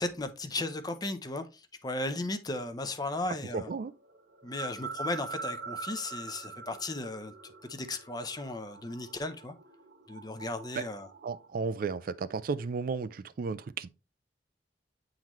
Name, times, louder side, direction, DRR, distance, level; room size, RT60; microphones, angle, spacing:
voice 1, 0.0-3.7 4.4-9.5 10.1-11.1, left 2 dB, 20° left, 0.6 m, -36 dB
voice 2, 3.5-3.9 10.8-10.9 11.2-13.9, right 4 dB, 50° right, 0.4 m, -34 dB
sound 1, 3.9-11.5, right 4 dB, 70° right, 1.5 m, -43 dB
8.6 x 3.9 x 3.0 m
head